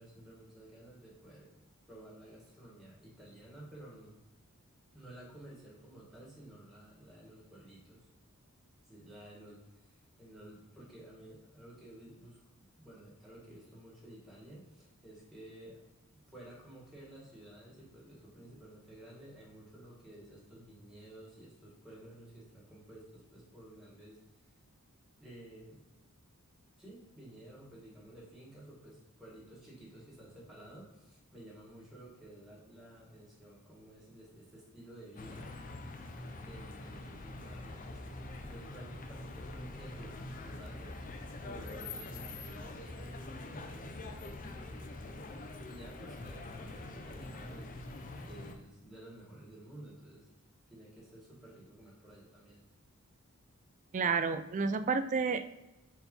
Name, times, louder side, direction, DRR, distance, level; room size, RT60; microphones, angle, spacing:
voice 1, 0.0-1.5 1.8-4.2 4.9-8.1 8.8-15.8 16.3-24.2 25.2-25.8 26.8-35.5 36.4-41.0 41.4-47.9 48.2-50.3 50.7-52.7, right 1 dB, ahead, -5 dB, 1.7 m, -53 dB
sound 1, 35.2-48.5, left 2 dB, 40° left, 0.6 m, -44 dB
voice 2, 53.9-55.5, right 5 dB, 35° right, 11 dB, 0.3 m, -30 dB
4.5 x 4.2 x 5.3 m, 1.0 s
head